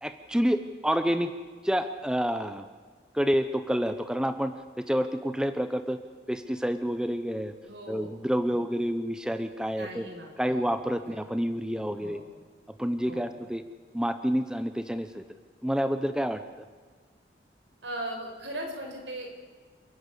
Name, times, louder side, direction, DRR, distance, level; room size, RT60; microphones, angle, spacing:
voice 1, 0.0-1.3 1.6-2.7 3.1-6.0 6.3-7.5 7.9-10.1 10.4-12.2 12.7-13.6 13.9-15.2 15.6-16.4, equal, 5° right, 10 dB, 0.7 m, -28 dB
voice 2, 7.6-8.1 9.8-10.6 11.0-11.2 12.0-12.2 13.0-13.3 17.8-19.5, right 1 dB, 75° right, 2 dB, 4.9 m, -38 dB
29.0 x 11.0 x 8.3 m, 1.5 s
head